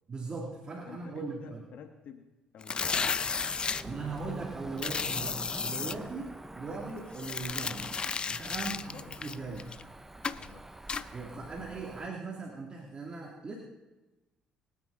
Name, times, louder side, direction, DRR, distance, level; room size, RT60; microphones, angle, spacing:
voice 1, 0.1-1.6 3.8-8.0 8.3-9.7 11.1-13.6, right 3 dB, 35° right, -2 dB, 2.6 m, -39 dB
voice 2, 0.8-2.3 2.5-3.3 3.8-4.3 8.5-9.2 10.3-10.7, left 7 dB, 65° left, 7 dB, 1.2 m, -51 dB
sound 1, 2.6-3.8 4.8-5.9 7.1-9.8 10.2-10.5 10.9-11.0, left 5 dB, 35° left, 0.5 m, -33 dB
Cricket / Motor vehicle (road), 2.8-12.1, right 2 dB, 10° right, 0.7 m, -46 dB
23.0 x 9.5 x 4.0 m, 1.1 s
supercardioid pair, 80°, 3 cm